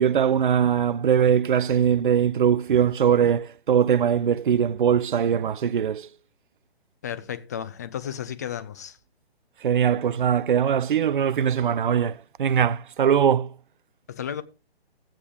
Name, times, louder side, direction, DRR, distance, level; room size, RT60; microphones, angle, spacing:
voice 1, 0.0-6.1 9.6-13.5, right 8 dB, 55° right, 0.5 m, -21 dB
voice 2, 7.0-9.0 14.1-14.4, left 9 dB, 15° left, 0.5 m, -33 dB
14.5 x 8.7 x 3.7 m
figure-of-eight pair, 140°, 31 cm